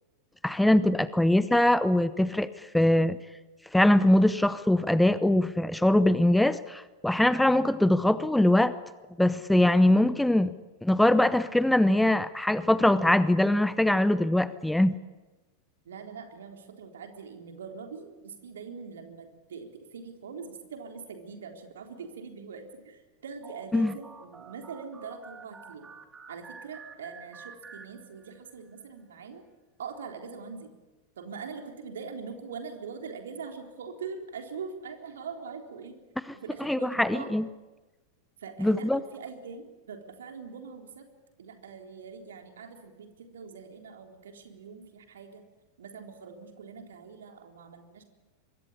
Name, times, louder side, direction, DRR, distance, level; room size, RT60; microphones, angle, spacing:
voice 1, 0.4-3.2 3.7-8.7 9.2-10.5 10.8-15.0 23.7-23.9 36.6-37.4 38.6-39.0, left 1 dB, 5° left, 16 dB, 0.8 m, -22 dB
voice 2, 15.9-25.9 26.3-29.4 29.8-30.7 31.2-36.0 36.3-37.4 38.4-41.1 41.4-45.5 45.8-48.0, right 5 dB, 65° right, 5 dB, 3.7 m, -42 dB
sound 1, 23.4-28.5, right 5 dB, 15° right, 2.9 m, -49 dB
25.0 x 22.0 x 9.9 m, 1.2 s
figure-of-eight pair, 90°, 0 cm